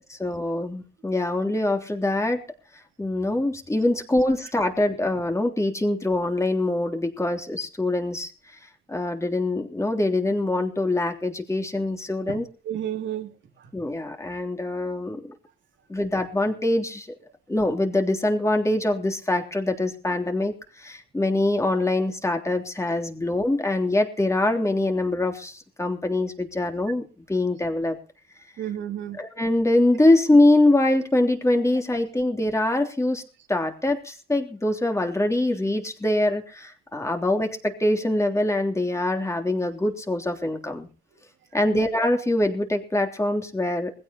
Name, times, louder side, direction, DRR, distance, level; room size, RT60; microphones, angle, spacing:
voice 1, 0.2-2.4 3.0-8.3 8.9-12.4 13.7-15.2 15.9-17.1 17.5-28.0 29.2-33.2 33.5-40.9 41.5-43.9, left 1 dB, 15° left, 4 dB, 3.4 m, -24 dB
voice 2, 12.3-13.7 28.6-29.2 41.7-41.9, right 10 dB, 70° right, 5 dB, 2.9 m, -33 dB
20.5 x 16.0 x 3.0 m, 0.36 s
cardioid pair, 90°, 20 cm